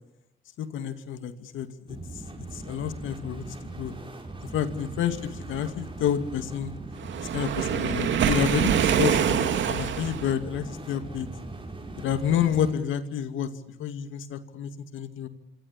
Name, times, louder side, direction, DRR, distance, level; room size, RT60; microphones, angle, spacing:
voice 1, 0.6-2.0 2.5-3.9 4.5-6.7 7.2-11.3 12.0-13.5 13.8-15.3, left 9 dB, 80° left, 9 dB, 2.4 m, -29 dB
sound 1, 1.9-12.7, right 2 dB, 25° right, 7.1 m, -40 dB
Waves surf, 7.0-10.3, right 8 dB, 70° right, 2.3 m, -25 dB
27.0 x 23.5 x 8.7 m, 0.82 s
cardioid pair, 90°, 20 cm